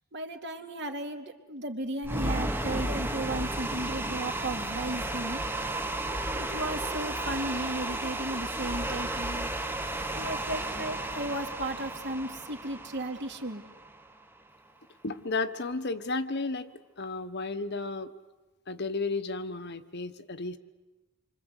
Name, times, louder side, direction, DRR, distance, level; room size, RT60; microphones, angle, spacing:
voice 1, 0.1-5.4 6.4-9.5 10.1-13.6, right 1 dB, 55° right, 4 dB, 2.5 m, -35 dB
sound 1, 2.0-14.2, right 1 dB, 10° right, 1.1 m, -33 dB
voice 2, 15.0-16.7 17.0-18.1 18.7-20.6, left 3 dB, 55° left, 10 dB, 1.2 m, -33 dB
27.5 x 24.5 x 8.2 m, 1.1 s
head